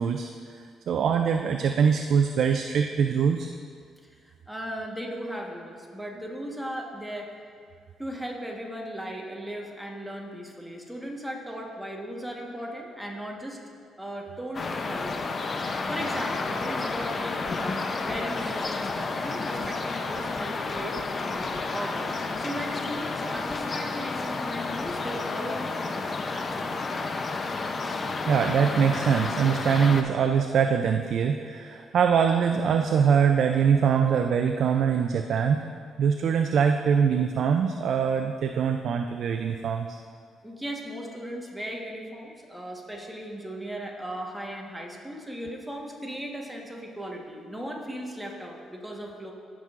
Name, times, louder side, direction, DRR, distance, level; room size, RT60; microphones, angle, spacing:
voice 1, 0.0-3.5 28.3-35.6 36.0-39.9, right 7 dB, 65° right, 5 dB, 0.3 m, -23 dB
voice 2, 4.1-7.3 8.0-13.6 14.0-15.3 15.6-26.9 40.4-49.3, equal, 5° right, 0 dB, 1.3 m, -37 dB
sound 1, 14.5-30.0, left 3 dB, 40° left, 0.6 m, -31 dB
14.5 x 6.0 x 2.5 m, 2.1 s
cardioid pair, 90°, 0 cm